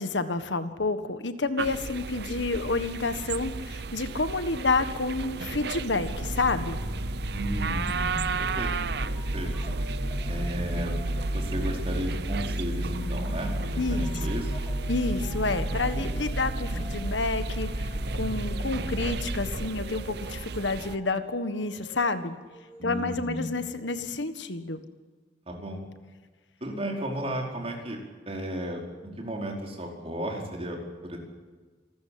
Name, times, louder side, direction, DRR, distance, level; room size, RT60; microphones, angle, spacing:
voice 1, 0.0-6.8 13.8-14.0 14.9-22.4 22.8-24.8, left 3 dB, 80° left, 10 dB, 1.6 m, -29 dB
sound 1, 1.6-21.0, right 5 dB, 60° right, 0.7 m, -36 dB
sound 2, 5.9-19.6, equal, 80° right, 2.1 m, -32 dB
voice 2, 7.3-8.7 9.3-9.5 10.3-10.9 11.3-14.5 15.9-16.1 16.7-16.8 22.8-23.5 25.5-25.8 26.6-28.0 28.3-31.2, equal, 30° right, 1 dB, 4.8 m, -34 dB
sound 3, 8.0-12.0 12.9-24.2, left 1 dB, 10° right, 3.6 m, -49 dB
27.5 x 13.5 x 8.7 m, 1.4 s
head